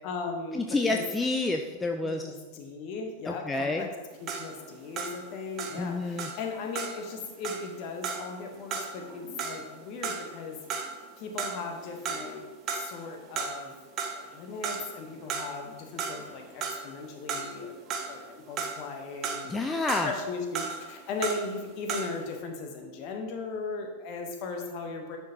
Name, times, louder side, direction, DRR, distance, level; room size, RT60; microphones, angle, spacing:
voice 1, 0.0-1.0 2.0-3.9 4.2-10.6 11.2-13.8 14.2-19.7 20.0-25.2, left 4 dB, 40° left, 3 dB, 1.1 m, -37 dB
voice 2, 0.5-2.2 3.3-3.9 5.8-6.3 19.5-20.1, left 3 dB, 10° left, 4 dB, 0.4 m, -29 dB
sound 1, 4.1-11.1 11.4-12.4 12.7-13.7 14.0-22.3, right 5 dB, 35° right, 0.8 m, -36 dB
10.5 x 4.5 x 2.9 m, 1.3 s
figure-of-eight pair, 90°, 0 cm